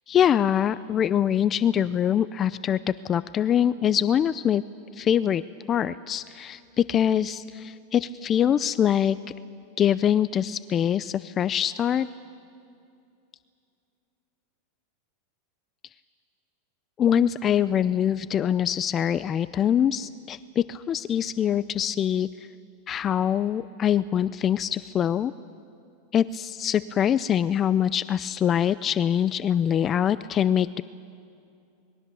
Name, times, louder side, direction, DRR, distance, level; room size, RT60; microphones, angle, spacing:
voice 1, 0.1-2.8 3.0-4.6 4.9-5.4 5.7-9.2 9.8-12.1 17.0-22.3 22.9-25.3 26.1-30.8, left 9 dB, 30° left, 15 dB, 0.5 m, -24 dB
26.0 x 21.5 x 6.9 m, 2.5 s
hypercardioid pair, 115°, 0 cm